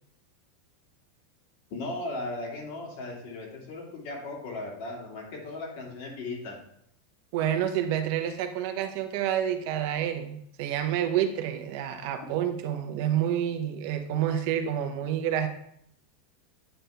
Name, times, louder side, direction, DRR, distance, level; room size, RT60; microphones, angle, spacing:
voice 1, 1.7-6.6, left 2 dB, 60° left, -2 dB, 2.5 m, -37 dB
voice 2, 7.3-15.5, right 10 dB, 55° right, 6 dB, 0.8 m, -28 dB
9.0 x 4.3 x 3.4 m, 0.71 s
supercardioid pair, 150°, 0 cm